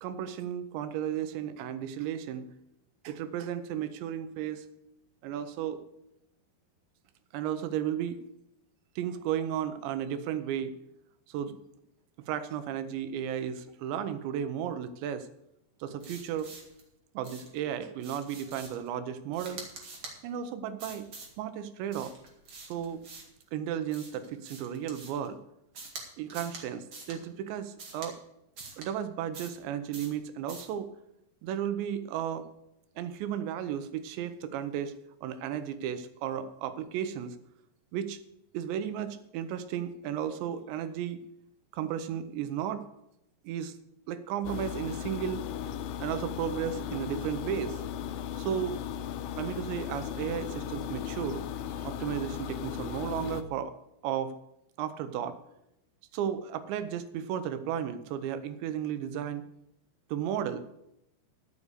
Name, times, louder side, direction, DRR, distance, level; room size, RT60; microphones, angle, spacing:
voice 1, 0.0-2.5 3.0-4.7 5.2-5.8 7.3-8.2 9.0-10.7 11.3-11.6 12.3-15.3 15.8-16.5 17.1-19.7 20.2-21.1 21.4-22.1 22.6-23.1 23.5-25.4 26.2-28.2 28.8-30.9 31.4-32.5 33.0-34.9 35.2-37.4 37.9-38.2 38.5-41.2 41.7-42.9 43.4-43.8 44.1-45.5 46.0-47.8 48.4-48.8 49.4-51.4 51.7-53.7 54.0-54.4 54.8-55.4 56.1-59.4 60.1-60.7, right 9 dB, 85° right, 11 dB, 3.1 m, -34 dB
sound 1, 16.0-16.8 17.2-17.6 18.0-18.9 19.3-20.2 20.8-21.3 21.9-23.4 23.9-25.3 25.7-26.0 26.3-26.6 26.9-27.2 27.8-28.1 28.6-28.9 29.3-29.6 29.9-30.2 30.5-30.7, right 3 dB, 40° right, 2.0 m, -46 dB
sound 2, 44.4-53.4, left 9 dB, 90° left, 2.9 m, -36 dB
12.5 x 6.8 x 6.7 m, 0.83 s
omnidirectional pair, 5.1 m